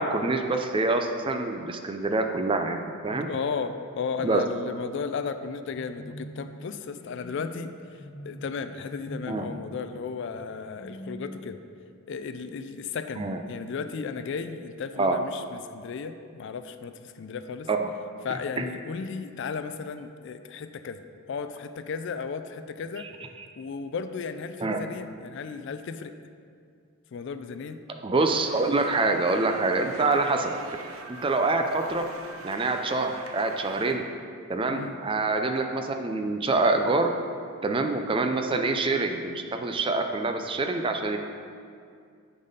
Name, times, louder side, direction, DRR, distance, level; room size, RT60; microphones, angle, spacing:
voice 1, 0.0-3.3 4.2-4.4 9.3-9.5 13.2-13.4 15.0-15.2 17.7-17.9 18.6-18.7 23.0-23.1 23.4-23.5 24.6-24.8 28.0-30.5 31.1-32.1 32.4-34.0 34.5-37.1 37.6-41.2, right 3 dB, 25° right, 5 dB, 0.4 m, -26 dB
sound 1, 3.1-4.2 5.8-12.2, equal, 75° left, 0.8 m, -44 dB
voice 2, 3.3-7.7 8.2-11.6 12.1-17.7 18.2-21.0 21.3-23.1 23.6-26.1 27.1-27.8 34.7-35.0, left 5 dB, 55° left, 10 dB, 0.3 m, -34 dB
sound 2, 28.2-34.0, right 3 dB, 75° right, 0.7 m, -44 dB
8.5 x 4.1 x 5.3 m, 2.3 s
head